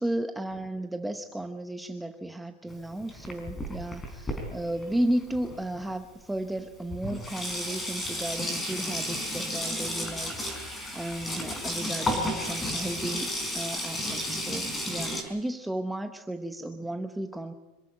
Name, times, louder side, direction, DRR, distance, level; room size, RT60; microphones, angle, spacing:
voice 1, 0.0-17.5, right 1 dB, 5° right, 7 dB, 0.9 m, -34 dB
Sink (filling or washing), 2.7-5.8 6.6-6.7 6.9-15.2, left 1 dB, 15° left, 4.7 m, -33 dB
26.0 x 14.0 x 9.7 m, 1.1 s
supercardioid pair, 160°, 0 cm